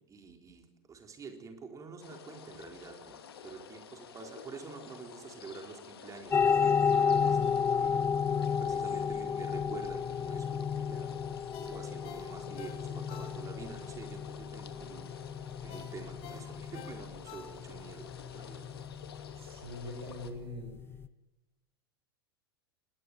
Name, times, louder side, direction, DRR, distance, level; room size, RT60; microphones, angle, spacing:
voice 1, 0.1-7.9 8.6-11.1 11.6-15.1 15.6-18.7, right 5 dB, 25° right, 4 dB, 4.1 m, -47 dB
sound 1, 2.0-20.3, left 8 dB, 75° left, 2.5 m, -51 dB
sound 2, 6.3-21.1, left 6 dB, 20° left, 0.9 m, -32 dB
Ringtone, 11.5-13.8 14.2-14.3 15.7-17.9 18.3-18.4, left 6 dB, 45° left, 4.6 m, -50 dB
voice 2, 19.4-20.7, left 2 dB, 80° right, 3 dB, 6.4 m, -42 dB
21.5 x 19.0 x 9.3 m, 1.0 s
figure-of-eight pair, 90°, 13 cm